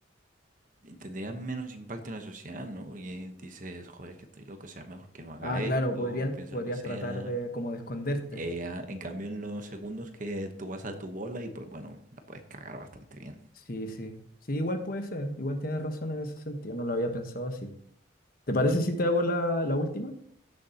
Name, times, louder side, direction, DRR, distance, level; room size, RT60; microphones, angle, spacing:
voice 1, 0.8-7.3 8.3-12.9 13.2-13.4, right 1 dB, 40° right, 6 dB, 1.1 m, -39 dB
voice 2, 5.4-8.4 13.7-14.2 14.5-17.7 18.5-20.1, left 1 dB, 45° left, 6 dB, 1.2 m, -30 dB
16.5 x 7.0 x 2.9 m, 0.63 s
head